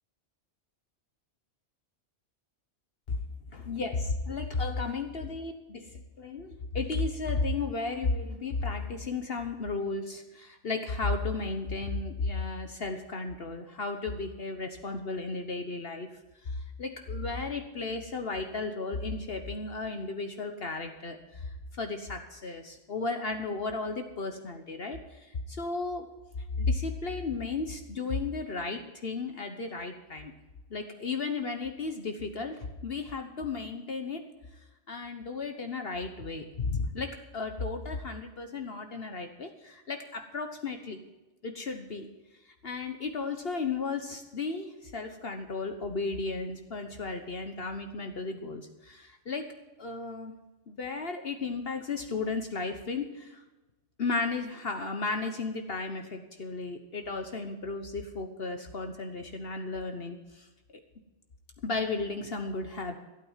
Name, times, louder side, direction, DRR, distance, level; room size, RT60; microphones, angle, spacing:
voice 1, 3.5-5.9 6.2-16.1 16.4-26.1 26.6-30.3 30.7-34.2 34.9-41.0 41.4-42.1 42.6-50.3 50.7-53.4 54.0-60.5 61.6-63.0, left 3 dB, 55° left, 5 dB, 1.3 m, -34 dB
15.0 x 9.3 x 5.7 m, 1.1 s
omnidirectional pair, 1.2 m